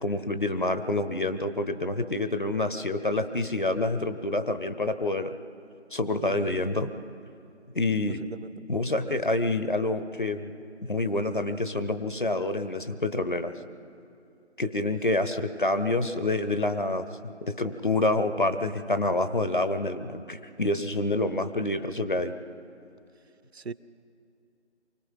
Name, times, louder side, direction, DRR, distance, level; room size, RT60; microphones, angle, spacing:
voice 1, 0.0-5.3 5.9-6.9 7.7-8.2 8.7-10.5 10.9-13.5 14.6-22.3, left 2 dB, 45° left, 0.8 m, -27 dB
voice 2, 6.2-6.7 8.1-8.6 23.5-23.7, right 4 dB, 65° right, 0.7 m, -40 dB
25.0 x 19.0 x 5.6 m
figure-of-eight pair, 160°, 35 cm